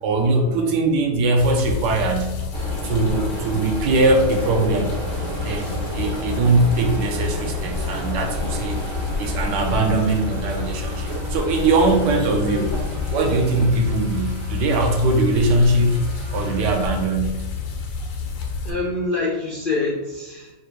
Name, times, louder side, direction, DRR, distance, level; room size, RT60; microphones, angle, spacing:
voice 1, 0.0-2.5 2.8-5.0 5.4-8.8 9.2-12.8 13.1-16.1 16.3-17.4, right 2 dB, 75° right, 3 dB, 1.3 m, -21 dB
sound 1, 1.4-18.7, left 5 dB, 90° left, 1.4 m, -29 dB
sound 2, 2.5-13.7, equal, 30° right, 0.6 m, -32 dB
Motor vehicle (road) / Accelerating revving vroom, 4.9-17.0, left 2 dB, 45° right, 0.9 m, -38 dB
voice 2, 18.6-20.5, left 3 dB, 70° left, -5 dB, 0.5 m, -26 dB
3.7 x 2.5 x 4.4 m, 1.1 s
omnidirectional pair, 2.0 m